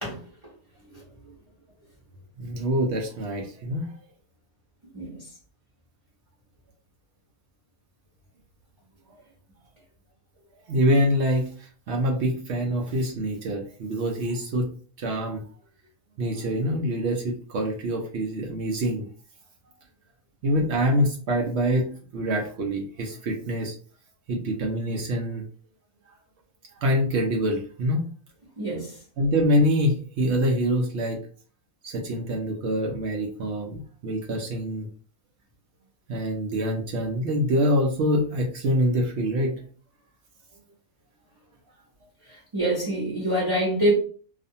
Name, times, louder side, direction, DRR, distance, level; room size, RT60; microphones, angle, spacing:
voice 1, 2.4-4.0 10.7-14.7 15.0-15.4 16.2-19.0 20.4-23.7 24.3-25.4 26.8-28.0 29.2-31.2 31.8-34.9 36.1-39.6, equal, 65° right, 1 dB, 0.7 m, -25 dB
voice 2, 28.6-28.9 42.3-43.9, right 1 dB, 25° right, -6 dB, 0.8 m, -25 dB
2.5 x 2.5 x 2.6 m, 0.42 s
omnidirectional pair, 1.5 m